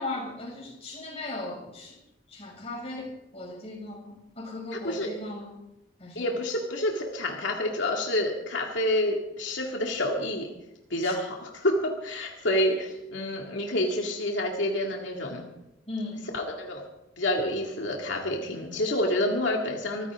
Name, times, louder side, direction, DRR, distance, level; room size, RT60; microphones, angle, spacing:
voice 1, 0.0-2.0 2.3-5.6 6.0-6.3 11.0-11.1 15.9-16.3, left 2 dB, 35° left, -1 dB, 6.1 m, -37 dB
voice 2, 6.2-10.5 10.9-15.4 16.3-16.8 17.2-20.1, left 1 dB, 85° left, 0 dB, 2.2 m, -28 dB
24.0 x 15.0 x 3.7 m, 0.88 s
head